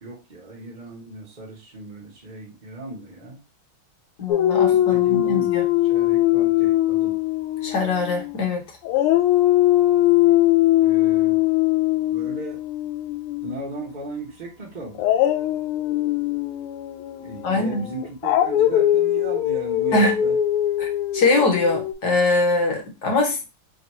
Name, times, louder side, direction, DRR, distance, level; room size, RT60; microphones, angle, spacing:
voice 1, 0.0-3.4 4.7-5.5 5.9-7.2 10.8-11.5 12.1-12.6 13.4-15.1 17.2-20.4, right 2 dB, 45° right, 0.5 m, -36 dB
voice 2, 4.2-5.7 7.6-8.6 17.4-17.9 19.9-20.2 20.8-23.5, left 3 dB, 55° left, 1.5 m, -22 dB
Dog, 4.3-8.5 8.8-13.8 14.9-21.9, left 14 dB, 85° left, 1.5 m, -21 dB
3.9 x 2.3 x 4.2 m
omnidirectional pair, 2.4 m